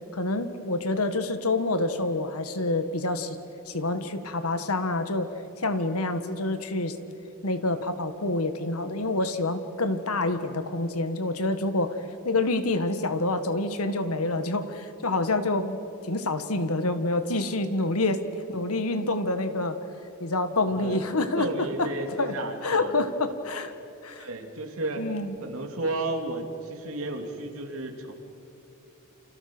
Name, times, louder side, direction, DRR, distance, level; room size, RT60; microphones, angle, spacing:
voice 1, 0.1-3.4 3.7-5.3 5.6-6.9 7.4-12.0 12.2-15.8 16.0-18.2 18.5-19.8 20.2-21.9 22.2-22.3 22.6-23.7 24.0-24.3 25.0-25.3, left 2 dB, 85° left, 10 dB, 1.7 m, -27 dB
voice 2, 20.7-21.0 21.4-22.9 24.2-25.1 25.4-28.1, right 2 dB, 70° right, 3 dB, 3.0 m, -33 dB
29.5 x 27.0 x 6.2 m, 2.8 s
head